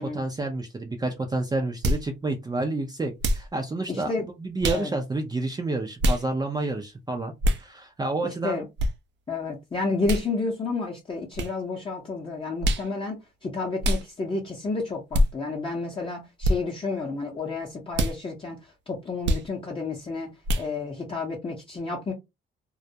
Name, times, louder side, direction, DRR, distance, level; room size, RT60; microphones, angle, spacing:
voice 1, 0.0-8.6, right 2 dB, 20° right, 0.5 m, -29 dB
sound 1, 1.8-2.1 3.2-3.5 4.6-4.9 6.0-6.2 7.4-7.6 8.8-8.9 10.0-10.3 11.3-11.5 12.6-12.9 13.8-14.0 15.1-15.3 16.4-16.6 17.9-18.2 19.2-19.5 20.4-20.7, equal, 65° right, 0.5 m, -23 dB
voice 2, 3.9-4.2 4.7-4.9 8.4-8.6 9.3-18.6 18.9-20.3 20.6-22.1, left 3 dB, 25° left, 0.7 m, -30 dB
2.3 x 2.0 x 2.7 m
cardioid pair, 90°, 20 cm